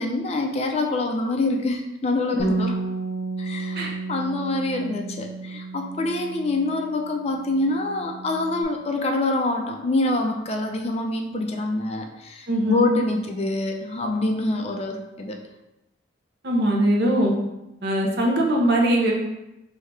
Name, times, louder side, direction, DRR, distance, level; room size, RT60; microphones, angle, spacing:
voice 1, 0.0-2.7 3.4-15.4, left 2 dB, 35° left, 4 dB, 0.4 m, -26 dB
Bass guitar, 2.4-7.1 7.4-8.6, right 3 dB, 60° left, 0.8 m, -32 dB
voice 2, 12.5-12.9 16.4-17.3 17.8-19.2, right 1 dB, 65° right, -1 dB, 0.8 m, -21 dB
4.6 x 2.7 x 3.2 m, 0.94 s
head